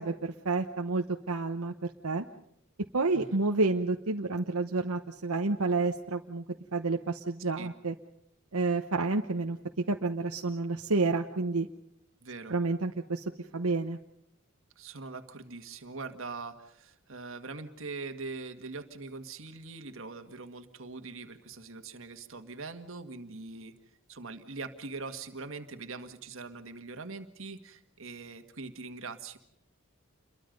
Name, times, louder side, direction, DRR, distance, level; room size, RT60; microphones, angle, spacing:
voice 1, 0.0-2.2 2.9-6.4 6.7-7.9 8.5-9.6 9.9-11.7 12.5-13.2 13.5-14.0, right 3 dB, 85° right, 4 dB, 1.0 m, -29 dB
voice 2, 12.2-12.6 14.8-23.7 24.1-29.4, right 3 dB, 65° right, 8 dB, 1.8 m, -42 dB
28.5 x 23.0 x 5.3 m, 0.73 s
head